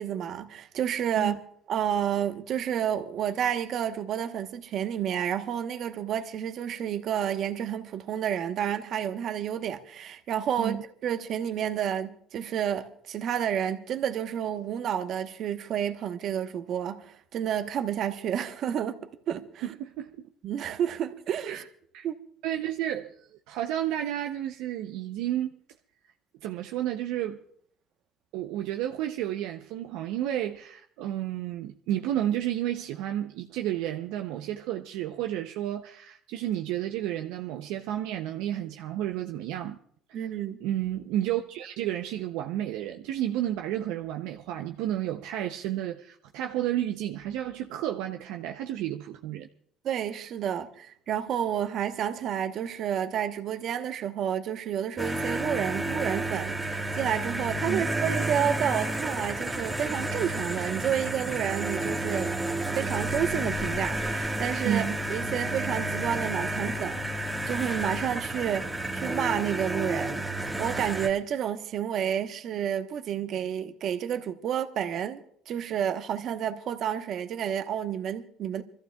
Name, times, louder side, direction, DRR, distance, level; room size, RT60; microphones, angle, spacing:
voice 1, 0.0-1.4 1.7-19.0 19.3-19.7 20.4-21.6 22.0-22.1 40.1-40.6 49.8-62.3 62.7-64.8 65.1-70.3 70.6-75.2 75.5-78.6, right 9 dB, 60° right, 1.0 m, -30 dB
voice 2, 19.6-20.3 21.5-21.6 21.9-22.1 22.4-23.2 23.5-25.5 26.4-27.4 28.3-39.8 40.6-49.5 57.6-57.9 64.6-65.0, right 12 dB, 80° right, 0.6 m, -31 dB
sound 1, 55.0-71.1, right 1 dB, 5° right, 1.5 m, -31 dB
27.0 x 14.5 x 2.3 m
supercardioid pair, 90°, 0 cm